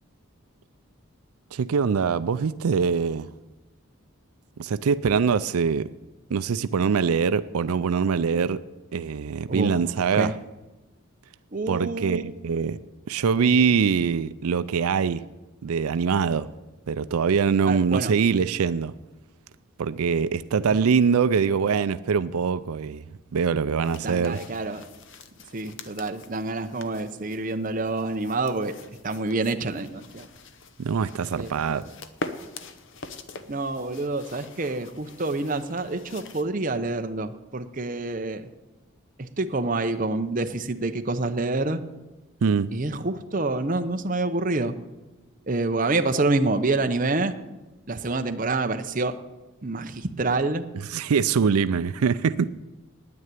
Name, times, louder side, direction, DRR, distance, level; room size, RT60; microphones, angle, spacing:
voice 1, 1.5-3.3 4.6-5.9 6.3-8.6 8.9-10.3 11.7-12.8 13.1-15.2 15.6-16.5 16.9-18.9 19.8-23.0 23.3-24.4 30.8-31.8 42.4-42.7 50.9-52.5, right 6 dB, 90° right, 0.4 m, -23 dB
voice 2, 9.5-9.8 10.1-10.3 11.5-12.2 17.6-18.1 24.0-24.8 25.5-28.7 29.0-30.3 31.4-31.9 33.5-38.5 39.2-41.8 42.7-44.8 45.5-47.4 47.9-49.2 49.6-50.6, right 2 dB, 35° right, 0.7 m, -27 dB
sound 1, 23.8-36.5, left 3 dB, 60° left, 0.8 m, -44 dB
9.6 x 9.5 x 9.1 m
head